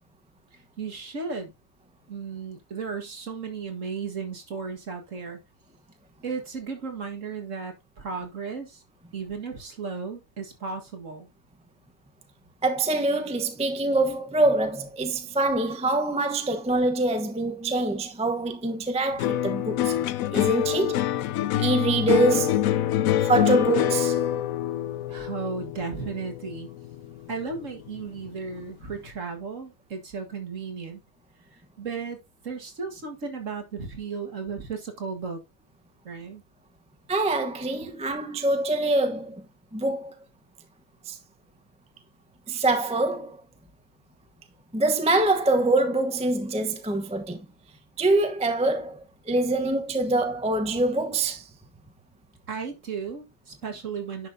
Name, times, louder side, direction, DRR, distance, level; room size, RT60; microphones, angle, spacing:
voice 1, 0.5-1.5 2.1-5.4 6.2-8.8 9.1-11.3 25.1-26.7 27.3-31.0 31.8-32.2 32.4-35.4 36.0-36.4 52.5-54.3, right 5 dB, 50° right, 2.1 m, -35 dB
voice 2, 12.6-20.0 20.3-21.0 21.6-22.6 23.2-24.2 37.1-39.3 39.7-40.2 41.0-41.2 42.5-43.4 44.7-47.4 48.0-51.5, right 2 dB, 5° right, 0.8 m, -24 dB
sound 1, 19.2-27.7 28.0-28.6, left 12 dB, 70° left, 0.9 m, -26 dB
10.5 x 6.0 x 2.7 m
omnidirectional pair, 1.7 m